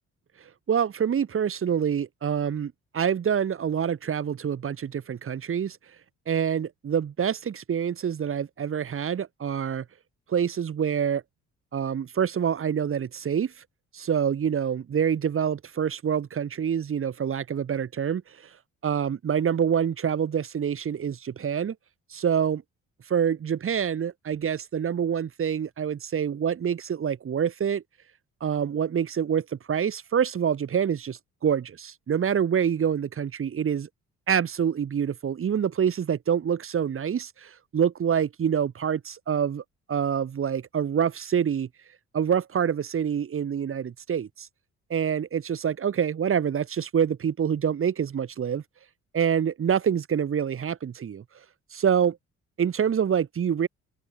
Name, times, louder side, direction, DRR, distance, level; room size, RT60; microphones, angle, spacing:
voice 1, 0.7-5.8 6.3-9.8 10.3-11.2 11.7-13.5 13.9-18.2 18.8-21.7 22.1-22.6 23.1-27.8 28.4-33.9 34.3-39.6 39.9-41.7 42.1-44.5 44.9-48.6 49.1-51.2 51.7-52.2 52.6-53.7, right 8 dB, 45° right, 1.5 m, -26 dB
open air
cardioid pair, 90°, 30 cm